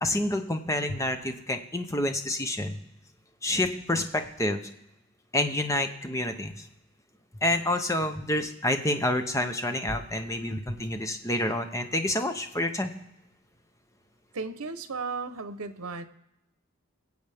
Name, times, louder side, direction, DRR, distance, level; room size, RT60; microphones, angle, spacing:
voice 1, 0.0-2.8 3.4-4.7 5.3-6.5 7.4-12.9, left 1 dB, 15° left, 7 dB, 0.7 m, -28 dB
voice 2, 14.3-16.1, right 4 dB, 90° right, 11 dB, 0.8 m, -35 dB
22.0 x 7.9 x 3.5 m, 0.89 s
head